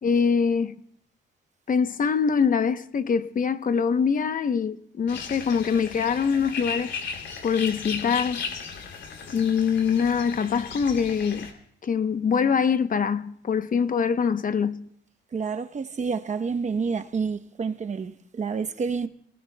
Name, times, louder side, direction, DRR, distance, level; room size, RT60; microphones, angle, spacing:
voice 1, 0.0-0.8 1.7-6.9 7.4-8.4 9.3-11.5 11.8-14.9, left 6 dB, 45° left, 0.9 m, -24 dB
sound 1, 5.1-11.5, left 6 dB, 65° left, 2.9 m, -36 dB
voice 2, 15.3-19.1, right 5 dB, 35° right, 0.9 m, -29 dB
29.0 x 19.5 x 2.3 m
cardioid pair, 90°, 20 cm